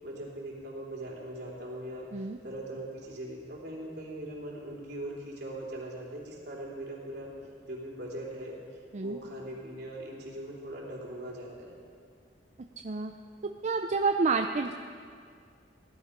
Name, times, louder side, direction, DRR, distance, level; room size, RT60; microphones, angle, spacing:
voice 1, 0.0-2.1 2.4-7.3 7.7-8.6 9.0-11.8, right 1 dB, 65° right, -3 dB, 3.4 m, -40 dB
voice 2, 13.6-14.7, right 4 dB, 40° right, 5 dB, 0.5 m, -28 dB
18.0 x 11.5 x 5.2 m, 2.2 s
head